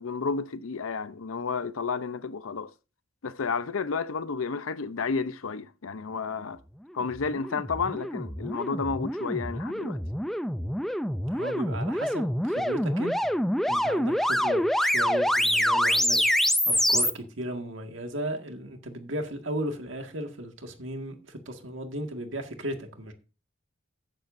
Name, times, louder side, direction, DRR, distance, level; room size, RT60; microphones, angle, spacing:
voice 1, 0.0-2.7 3.2-6.6 6.9-10.0, left 5 dB, 90° left, 0.7 m, -31 dB
sound 1, 7.1-17.1, equal, ahead, 0.4 m, -26 dB
voice 2, 11.3-13.3 13.7-23.1, right 1 dB, 65° right, 1.9 m, -35 dB
14.0 x 10.0 x 2.6 m
head